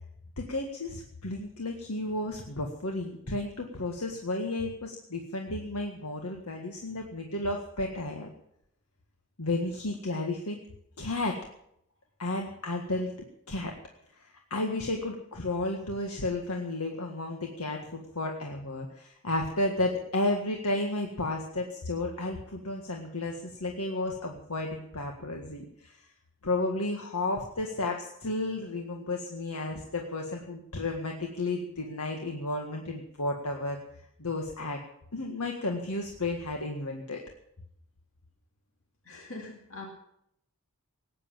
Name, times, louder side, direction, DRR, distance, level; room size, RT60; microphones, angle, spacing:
voice 1, 0.4-8.3 9.4-10.6 11.0-11.4 12.2-13.1 13.5-13.7 14.2-26.1 26.4-33.8 34.2-34.8 35.1-37.2, left 2 dB, 80° left, 2 dB, 1.8 m, -32 dB
voice 2, 39.0-39.9, left 3 dB, 65° left, 1 dB, 2.3 m, -42 dB
18.5 x 9.9 x 7.4 m, 0.75 s
head